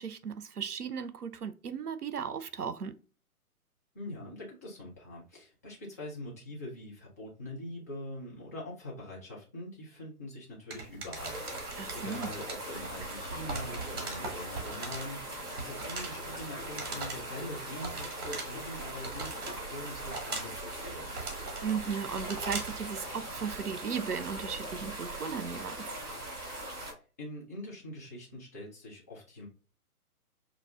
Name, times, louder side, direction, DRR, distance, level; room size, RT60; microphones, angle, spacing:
voice 1, 0.0-2.9 11.8-12.3 21.6-26.0, right 6 dB, 85° right, 0.6 m, -36 dB
voice 2, 3.9-21.1 26.9-29.5, left 1 dB, 10° left, 0.4 m, -43 dB
sound 1, 10.7-22.8, right 3 dB, 45° right, 1.4 m, -42 dB
sound 2, 11.1-26.9, right 1 dB, 20° right, 1.9 m, -40 dB
5.3 x 2.3 x 2.3 m
figure-of-eight pair, 125°, 45 cm